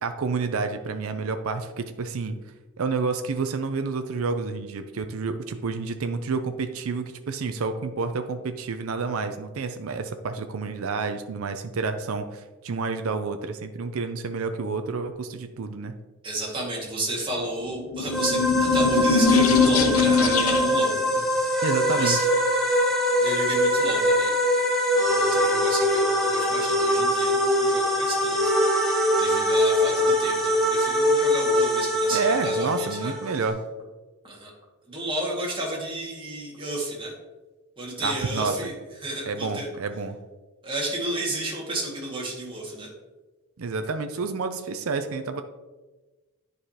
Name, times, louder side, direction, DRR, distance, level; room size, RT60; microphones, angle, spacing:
voice 1, 0.0-2.4 2.8-15.9 21.6-22.2 32.1-33.6 38.0-38.6 39.3-40.2 43.6-45.4, right 4 dB, 75° right, 8 dB, 0.5 m, -29 dB
voice 2, 16.2-21.6 22.0-22.2 23.2-24.3 24.9-33.1 34.2-34.5 34.9-37.1 37.8-38.7 39.0-39.7 40.6-42.9, right 1 dB, 25° right, -4 dB, 2.0 m, -32 dB
sound 1, 17.8-20.9, left 5 dB, 90° left, 0.7 m, -21 dB
sound 2, 18.1-33.5, equal, ahead, 1.1 m, -23 dB
10.0 x 4.8 x 2.9 m, 1.2 s
head